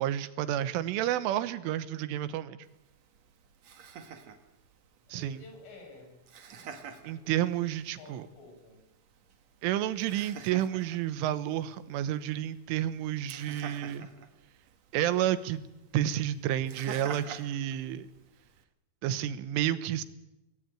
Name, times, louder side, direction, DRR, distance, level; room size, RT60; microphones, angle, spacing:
voice 1, 0.0-2.6 5.1-5.4 7.1-8.2 9.6-14.1 14.9-15.7 15.9-18.1 19.0-20.0, right 12 dB, 80° right, 13 dB, 3.5 m, -30 dB
Laughter, 2.6-18.6, right 6 dB, 60° right, 1.8 m, -49 dB
voice 2, 5.2-8.8, left 2 dB, 70° left, 5 dB, 8.1 m, -53 dB
24.5 x 19.5 x 9.1 m, 0.95 s
omnidirectional pair, 5.7 m